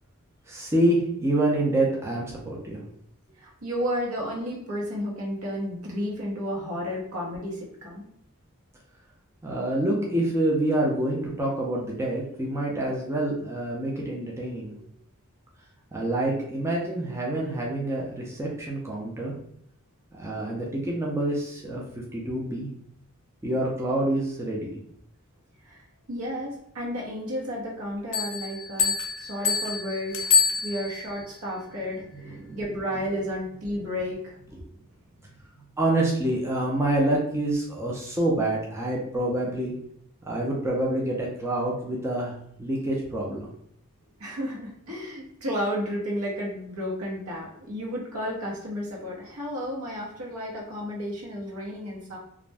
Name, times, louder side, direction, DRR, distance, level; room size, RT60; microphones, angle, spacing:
voice 1, 0.5-2.8 9.4-14.9 15.9-19.3 20.2-22.7 23.4-24.8 31.9-32.6 34.6-34.7 35.8-39.7 40.2-42.3 42.6-43.5, right 1 dB, 10° right, -3 dB, 0.4 m, -27 dB
voice 2, 3.4-8.1 25.6-25.8 26.1-30.3 30.6-34.4 44.2-52.2, equal, 80° right, -3 dB, 1.0 m, -32 dB
sound 1, 28.1-31.2, left 6 dB, 60° left, 0.5 m, -26 dB
2.4 x 2.1 x 3.3 m, 0.70 s
head